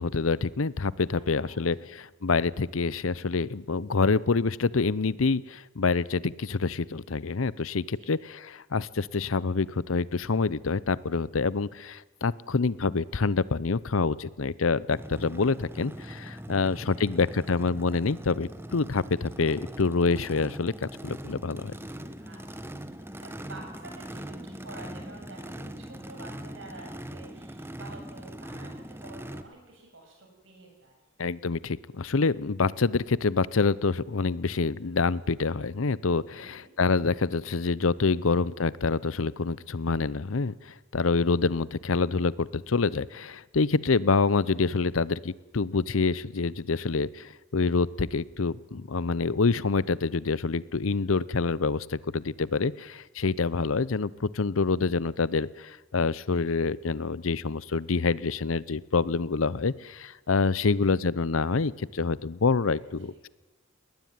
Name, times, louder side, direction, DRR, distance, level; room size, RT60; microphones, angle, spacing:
voice 1, 0.0-21.7 31.2-63.3, left 4 dB, 85° left, 20 dB, 0.7 m, -27 dB
voice 2, 1.1-1.9 7.9-8.1 16.5-16.6 16.9-17.5 22.2-30.9 36.3-36.7 60.6-60.9 62.7-62.9, right 2 dB, 70° right, 2 dB, 7.7 m, -49 dB
Race car auto racing / Idling / Accelerating revving vroom, 14.9-29.4, right 1 dB, 10° right, 1.1 m, -41 dB
20.0 x 19.5 x 9.4 m, 1.1 s
head